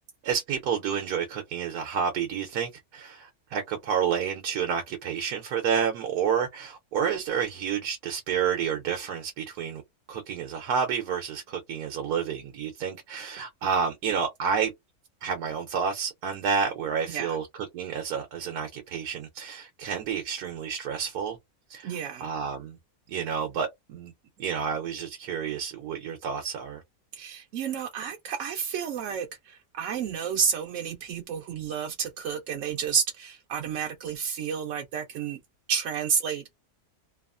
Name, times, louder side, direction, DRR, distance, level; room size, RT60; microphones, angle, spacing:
voice 1, 0.2-9.8 10.1-14.7 15.2-17.5 17.7-21.4 21.7-22.8 23.1-24.1 24.4-26.8, right 7 dB, 85° right, 1.2 m, -30 dB
voice 2, 21.8-22.3 27.1-35.4 35.7-36.5, right 7 dB, 70° right, 0.8 m, -30 dB
2.9 x 2.4 x 2.4 m
omnidirectional pair, 1.6 m